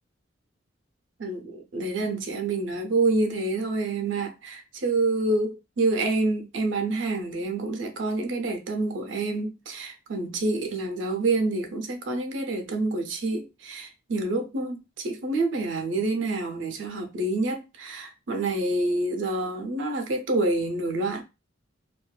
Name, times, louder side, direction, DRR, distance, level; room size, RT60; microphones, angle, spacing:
voice 1, 1.2-21.2, right 2 dB, 75° right, 0.6 m, -27 dB
2.4 x 2.3 x 2.2 m
head